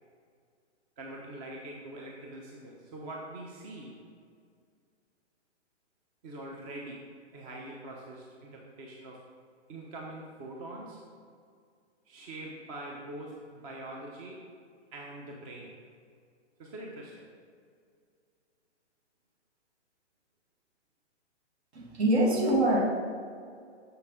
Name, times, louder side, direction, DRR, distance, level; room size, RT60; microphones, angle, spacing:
voice 1, 1.0-3.9 6.2-7.0 7.3-9.2 9.7-11.0 12.1-14.4 14.9-15.7 16.6-17.3, right 1 dB, 30° right, -1 dB, 0.8 m, -43 dB
voice 2, 21.7-22.8, right 1 dB, 60° right, -1 dB, 1.7 m, -24 dB
6.8 x 5.7 x 3.7 m, 2.2 s
hypercardioid pair, 135°, 36 cm